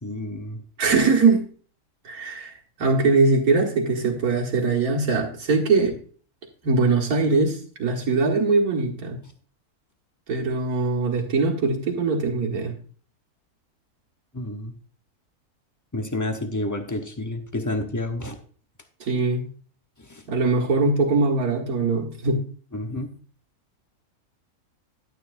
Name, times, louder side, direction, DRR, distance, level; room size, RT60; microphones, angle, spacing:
voice 1, 0.0-0.6 14.3-14.7 15.9-18.4 20.0-20.2 22.7-23.1, left 1 dB, 15° left, 5 dB, 0.8 m, -30 dB
voice 2, 0.8-1.5 2.0-2.5 2.8-6.0 6.6-9.2 10.3-12.7 19.0-19.4 20.3-22.4, right 3 dB, 65° right, 0 dB, 2.2 m, -21 dB
11.5 x 9.2 x 2.6 m, 0.43 s
omnidirectional pair, 1.6 m